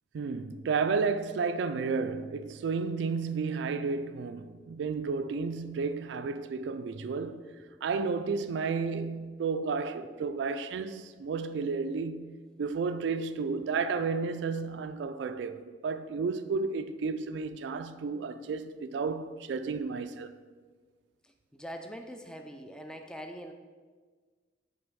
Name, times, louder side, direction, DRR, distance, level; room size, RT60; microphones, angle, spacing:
voice 1, 0.1-7.5 7.8-20.3, right 4 dB, 75° right, 0.3 m, -32 dB
voice 2, 21.2-23.5, equal, 5° left, 0.4 m, -44 dB
6.3 x 4.0 x 6.1 m
head